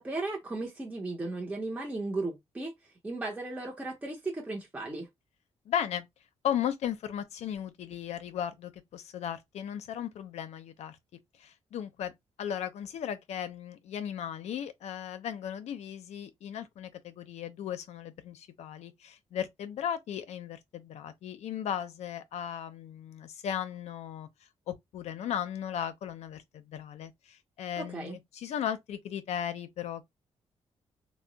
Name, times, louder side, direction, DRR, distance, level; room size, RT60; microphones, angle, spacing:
voice 1, 0.0-5.1 27.8-28.2, right 2 dB, 15° right, 0.6 m, -36 dB
voice 2, 5.7-6.0 6.4-11.0 11.4-12.1 12.4-24.3 24.7-30.0, left 9 dB, 80° left, 0.5 m, -36 dB
2.2 x 2.0 x 3.8 m
cardioid pair, 140°, 11 cm